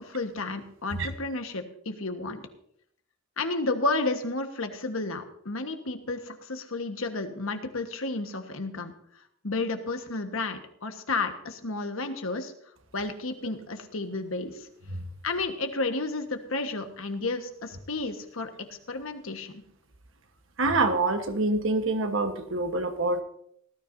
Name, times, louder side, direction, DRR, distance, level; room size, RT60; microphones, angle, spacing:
voice 1, 0.0-2.4 3.4-8.9 9.4-12.5 12.9-14.7 15.2-18.5 18.9-19.6, left 3 dB, 70° left, 6 dB, 1.4 m, -32 dB
voice 2, 20.6-23.2, right 2 dB, 65° right, 7 dB, 1.3 m, -26 dB
18.5 x 12.5 x 2.7 m, 0.68 s
head